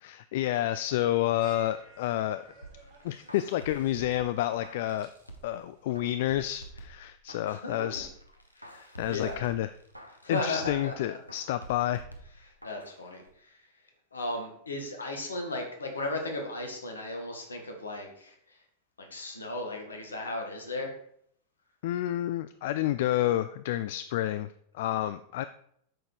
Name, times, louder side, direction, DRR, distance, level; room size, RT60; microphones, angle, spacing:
voice 1, 0.0-2.4 3.0-5.1 5.4-8.1 8.7-9.7 10.3-12.1 21.8-25.4, left 13 dB, 55° left, 13 dB, 0.3 m, -29 dB
sound 1, 1.4-6.5, right 4 dB, 50° right, 4.4 m, -56 dB
sound 2, 2.6-5.6 5.9-7.7 8.0-10.9 11.3-13.0 13.3-13.4, right 2 dB, 90° right, 1.2 m, -49 dB
voice 2, 7.4-7.9 8.6-9.4 10.2-11.2 12.4-13.6 14.1-18.6 19.0-20.9, left 2 dB, 75° left, 3 dB, 2.0 m, -36 dB
8.9 x 6.5 x 4.7 m, 0.69 s
figure-of-eight pair, 90°, 0 cm